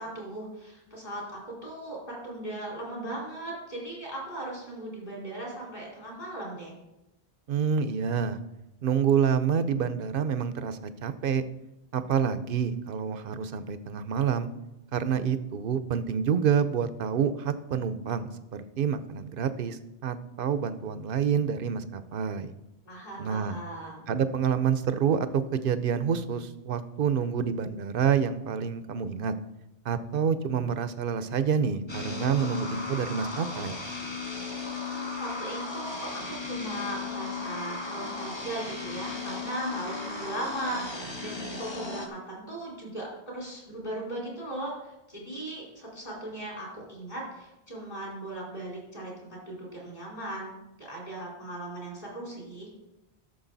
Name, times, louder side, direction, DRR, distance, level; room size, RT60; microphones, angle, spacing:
voice 1, 0.0-6.7 22.8-24.0 34.5-43.1 43.3-50.5 50.8-52.7, right 1 dB, 45° left, -4 dB, 4.5 m, -38 dB
voice 2, 7.5-8.4 8.8-11.4 11.9-14.5 14.9-18.3 18.8-22.5 23.2-23.6 24.1-29.3 29.8-33.8, right 7 dB, 60° right, 12 dB, 0.8 m, -27 dB
sound 1, 31.9-42.1, left 4 dB, 25° left, 1.2 m, -36 dB
13.0 x 6.6 x 4.0 m, 0.95 s
omnidirectional pair, 1.1 m